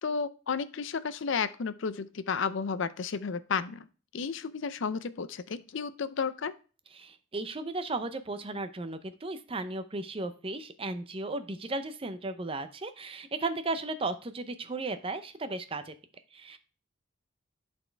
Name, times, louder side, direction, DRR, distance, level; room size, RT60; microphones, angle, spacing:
voice 1, 0.0-3.9 4.1-6.5, left 5 dB, 60° left, 14 dB, 0.5 m, -32 dB
voice 2, 7.0-15.9 16.3-16.6, right 2 dB, 25° right, 10 dB, 0.5 m, -35 dB
11.0 x 4.3 x 3.3 m, 0.37 s
head